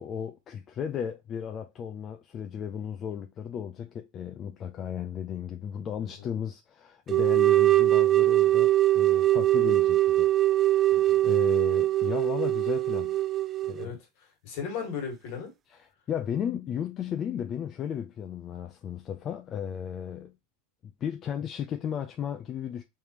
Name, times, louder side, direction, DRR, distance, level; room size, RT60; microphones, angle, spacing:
voice 1, 0.0-10.3 10.6-13.2 13.6-14.0 15.7-20.3 20.8-22.8, left 8 dB, 35° left, 0.5 m, -35 dB
voice 2, 6.0-6.3 10.9-11.2 13.8-15.5, left 6 dB, 60° left, 1.8 m, -37 dB
sound 1, 7.1-13.9, right 14 dB, 30° right, 0.3 m, -22 dB
3.5 x 3.2 x 2.9 m
hypercardioid pair, 105°, 0 cm